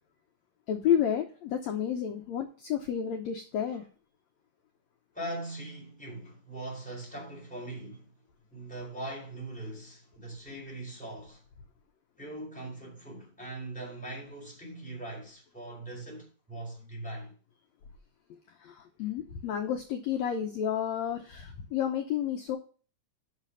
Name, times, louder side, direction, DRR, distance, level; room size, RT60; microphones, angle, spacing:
voice 1, 0.7-3.8 18.6-22.6, left 9 dB, 70° left, 1.8 m, -31 dB
voice 2, 5.1-8.1 8.5-11.4 12.2-17.3, right 1 dB, ahead, 3.5 m, -41 dB
7.4 x 6.2 x 5.6 m
omnidirectional pair, 3.8 m